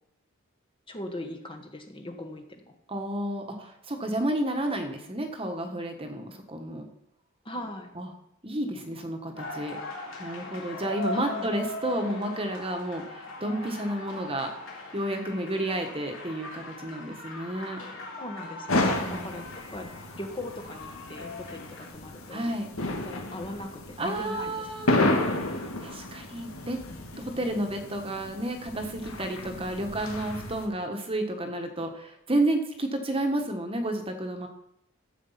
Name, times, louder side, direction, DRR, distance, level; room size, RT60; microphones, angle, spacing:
voice 1, 0.9-2.7 7.4-7.9 11.1-11.5 18.2-18.8 19.1-19.9 20.2-22.5 22.8-24.7, left 1 dB, 25° left, 4 dB, 1.6 m, -39 dB
voice 2, 2.9-6.9 7.9-8.1 8.4-9.8 10.2-14.5 14.9-17.8 19.0-19.4 22.3-22.7 24.0-24.9 25.8-26.8 27.2-34.5, right 1 dB, 25° right, 4 dB, 1.5 m, -31 dB
sound 1, 9.4-21.9, left 2 dB, 65° left, 4.1 m, -40 dB
sound 2, 18.7-30.7, left 2 dB, 85° left, 1.9 m, -32 dB
13.5 x 8.3 x 5.8 m, 0.77 s
head